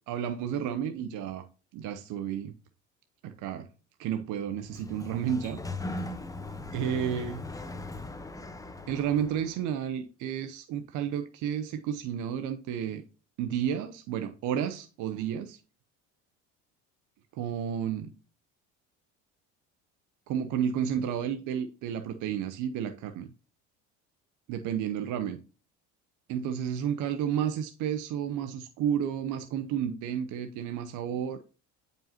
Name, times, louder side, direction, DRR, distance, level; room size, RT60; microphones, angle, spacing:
voice 1, 0.1-1.4 1.7-2.5 3.2-3.7 4.0-6.0 6.7-7.4 8.9-13.0 13.4-15.6 17.3-18.1 20.3-23.3 24.5-25.4 26.3-31.4, right 9 dB, 60° right, 0.9 m, -31 dB
Sliding door, 4.5-9.6, left 2 dB, 10° left, 0.9 m, -39 dB
8.9 x 5.4 x 2.8 m
supercardioid pair, 85°, 34 cm